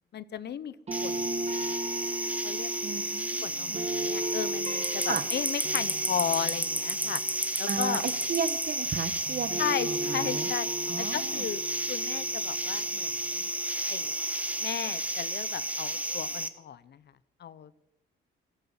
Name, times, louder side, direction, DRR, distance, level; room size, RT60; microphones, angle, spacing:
voice 1, 0.1-0.7 1.0-1.8 2.4-2.7 3.4-7.2 7.6-8.0 9.6-10.7 11.0-13.5 13.9-14.1 14.6-17.0 17.4-17.7, left 9 dB, 60° left, 17 dB, 0.8 m, -35 dB
sound 1, 0.9-16.5, right 1 dB, 5° right, 1.3 m, -32 dB
sound 2, 0.9-9.0 9.3-14.2, right 1 dB, 35° right, 2.4 m, -37 dB
voice 2, 2.8-3.9 5.1-5.2 7.7-10.5 10.9-11.4, right 6 dB, 50° right, 12 dB, 1.4 m, -35 dB
14.5 x 13.5 x 5.6 m, 0.84 s
cardioid pair, 90°, 20 cm